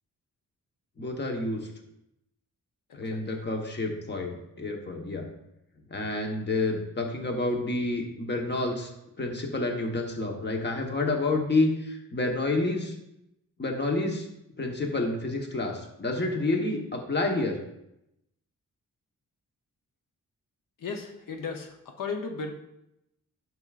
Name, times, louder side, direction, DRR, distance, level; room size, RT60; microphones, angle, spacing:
voice 1, 1.0-1.7 2.9-5.3 5.9-8.9 9.2-12.9 13.6-14.3 14.6-17.6, left 2 dB, 35° left, 2 dB, 1.2 m, -29 dB
voice 2, 3.1-3.4 20.8-22.5, left 4 dB, 80° left, 3 dB, 0.8 m, -35 dB
10.5 x 6.1 x 2.5 m, 0.83 s
wide cardioid pair, 125°, 32 cm